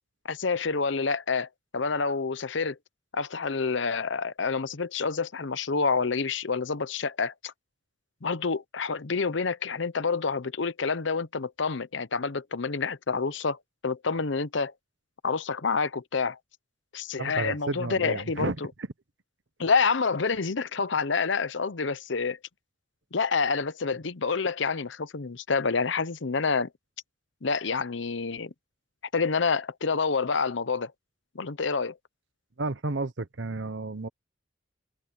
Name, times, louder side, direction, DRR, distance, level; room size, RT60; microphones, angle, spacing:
voice 1, 0.3-1.5 1.7-2.8 3.1-7.5 8.2-14.7 15.2-16.4 16.9-18.5 19.6-22.4 23.1-26.7 27.4-28.5 29.1-30.9 31.3-32.0, left 4 dB, 70° left, 0.8 m, -28 dB
voice 2, 17.2-18.9 32.6-34.1, right 2 dB, 65° right, 1.0 m, -32 dB
open air
head